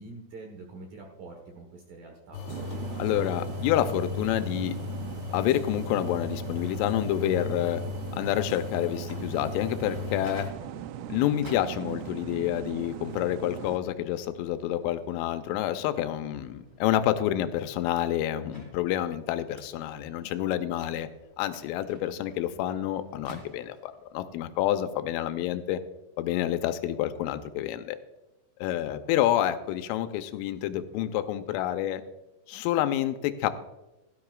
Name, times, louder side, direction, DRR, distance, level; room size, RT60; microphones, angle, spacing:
voice 1, 0.0-2.4, right 3 dB, 70° right, 2 dB, 2.2 m, -45 dB
sound 1, 2.3-10.5, left 5 dB, 65° left, 3.3 m, -36 dB
sound 2, 2.5-13.8, right 10 dB, 90° right, 3.1 m, -40 dB
voice 2, 3.0-4.8 5.3-7.8 8.1-10.5 11.1-21.1 21.4-25.8 26.2-28.0 28.6-32.0 32.5-33.5, left 12 dB, 90° left, 9 dB, 3.2 m, -28 dB
Microwave oven, 8.8-24.1, equal, 35° right, 0.7 m, -53 dB
16.5 x 13.0 x 2.4 m, 1.0 s
omnidirectional pair, 5.7 m